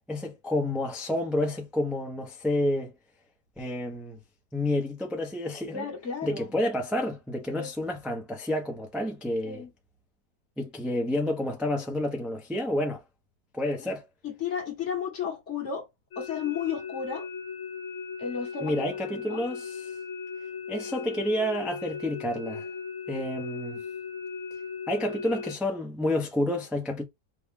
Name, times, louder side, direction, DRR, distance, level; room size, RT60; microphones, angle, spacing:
voice 1, 0.1-2.9 3.6-4.2 4.5-5.8 6.2-9.6 10.6-13.0 13.5-14.0 18.6-19.9 20.7-22.7 23.1-23.8 24.9-27.0, left 1 dB, ahead, 0.5 m, -29 dB
voice 2, 5.7-6.5 7.5-7.7 9.4-9.7 13.8-13.9 14.2-15.9 16.2-17.3 18.2-18.8 19.1-19.4, left 7 dB, 45° left, 1.3 m, -33 dB
sound 1, 16.1-25.5, left 5 dB, 70° left, 0.8 m, -37 dB
5.1 x 2.4 x 3.6 m
omnidirectional pair, 1.9 m